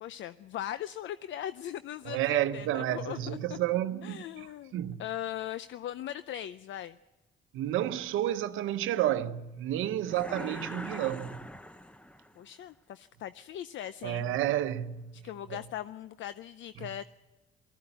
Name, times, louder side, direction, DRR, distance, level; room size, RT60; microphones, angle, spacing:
voice 1, 0.0-3.6 4.0-7.0 12.4-14.3 15.2-17.0, left 11 dB, 70° left, 0.6 m, -39 dB
voice 2, 2.0-5.0 7.5-11.4 14.0-15.6 16.8-16.9, right 12 dB, 90° right, 0.8 m, -31 dB
sound 1, 10.1-12.4, left 1 dB, 5° left, 0.8 m, -42 dB
18.5 x 14.5 x 10.0 m
cardioid pair, 90°, 20 cm